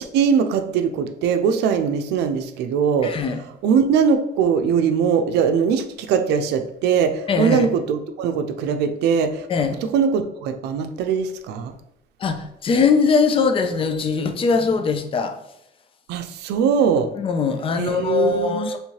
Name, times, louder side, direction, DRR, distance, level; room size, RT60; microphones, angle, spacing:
voice 1, 0.0-3.1 3.6-9.5 9.9-11.7 16.1-17.1 17.8-18.7, right 6 dB, 80° right, 8 dB, 0.5 m, -21 dB
voice 2, 3.0-3.4 7.3-7.7 9.5-9.8 12.2-15.3 17.2-18.8, left 5 dB, 35° left, 7 dB, 0.5 m, -21 dB
3.2 x 2.8 x 4.6 m, 0.78 s
cardioid pair, 110°, 17 cm